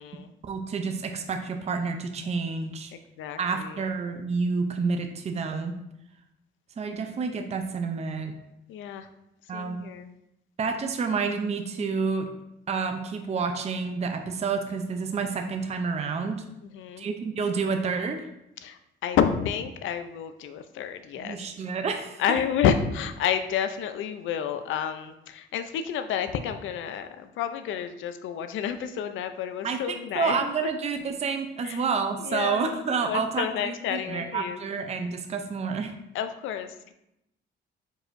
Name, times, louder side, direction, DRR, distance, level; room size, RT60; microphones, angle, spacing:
voice 1, 0.4-2.9 3.4-5.8 6.8-8.3 9.5-9.8 10.6-12.3 12.7-16.4 17.0-18.3 21.2-22.4 29.6-29.8 30.1-35.9, right 5 dB, 35° right, 5 dB, 0.5 m, -29 dB
voice 2, 3.2-3.8 8.7-9.1 9.5-10.1 16.6-17.1 18.6-21.5 22.2-30.7 31.6-31.8 32.2-32.7 33.0-34.6 36.1-36.9, left 8 dB, 80° left, 9 dB, 0.5 m, -30 dB
4.8 x 4.3 x 2.5 m, 0.84 s
cardioid pair, 90°, 20 cm